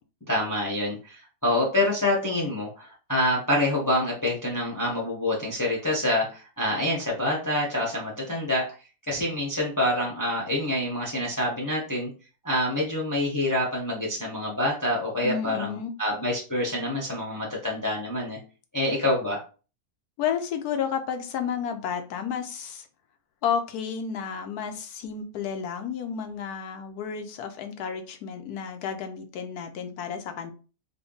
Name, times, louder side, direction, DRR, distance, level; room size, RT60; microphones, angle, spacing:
voice 1, 0.3-8.6 9.1-12.1 12.4-18.4 18.7-19.4, left 1 dB, 15° left, -3 dB, 0.7 m, -26 dB
voice 2, 15.2-15.9 20.2-22.9 23.4-30.5, left 7 dB, 80° left, 6 dB, 1.1 m, -31 dB
3.5 x 2.2 x 3.8 m, 0.35 s
omnidirectional pair, 1.6 m